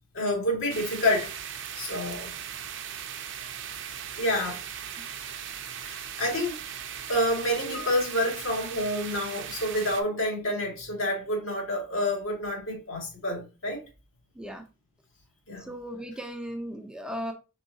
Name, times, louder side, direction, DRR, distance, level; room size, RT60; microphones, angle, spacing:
voice 1, 0.1-1.3 1.8-2.3 4.2-4.6 5.8-6.6 7.1-13.8 15.5-15.6, left 1 dB, 80° left, 2.2 m, -28 dB
sound 1, 0.7-10.0, right 8 dB, 65° right, 0.6 m, -38 dB
voice 2, 15.7-17.3, equal, 5° right, 0.6 m, -36 dB
4.6 x 4.0 x 2.7 m
head